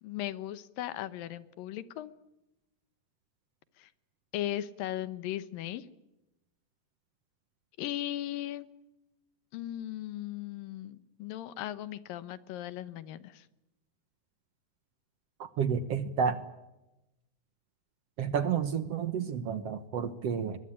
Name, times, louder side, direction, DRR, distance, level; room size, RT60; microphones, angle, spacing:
voice 1, 0.0-2.1 3.8-3.9 4.3-5.9 7.8-8.7 9.5-13.5, left 13 dB, 85° left, 15 dB, 2.8 m, -37 dB
voice 2, 15.4-16.4 18.2-20.6, right 7 dB, 60° right, 12 dB, 1.9 m, -30 dB
22.5 x 21.5 x 10.0 m, 0.95 s
omnidirectional pair, 3.9 m